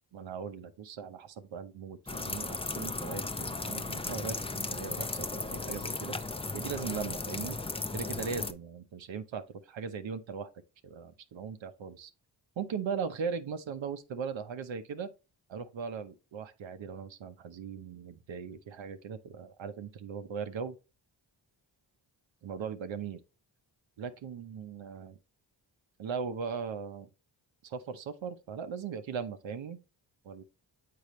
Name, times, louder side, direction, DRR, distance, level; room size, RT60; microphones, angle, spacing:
voice 1, 0.1-6.1 6.5-7.6 7.9-10.5 10.8-12.1 12.6-15.1 15.5-20.8 22.4-23.2 24.0-25.2 26.0-27.1 27.6-29.8 30.2-30.4, right 6 dB, 75° right, 0.8 m, -39 dB
sound 1, 2.1-8.5, left 3 dB, 15° left, 0.4 m, -36 dB
6.8 x 4.7 x 3.1 m
cardioid pair, 50°, 46 cm